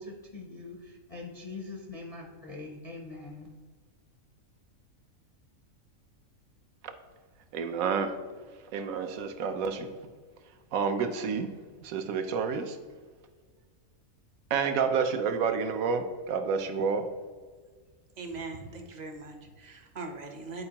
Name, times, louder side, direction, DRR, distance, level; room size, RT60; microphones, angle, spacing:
voice 1, 0.0-3.5, left 3 dB, 50° left, 0.4 m, -43 dB
voice 2, 7.5-8.1 8.7-9.9 10.7-11.5 11.8-12.8 14.5-17.1, right 5 dB, 80° right, 1.1 m, -29 dB
voice 3, 18.2-20.6, right 3 dB, 40° right, 0.6 m, -41 dB
9.7 x 4.4 x 2.9 m
omnidirectional pair, 1.4 m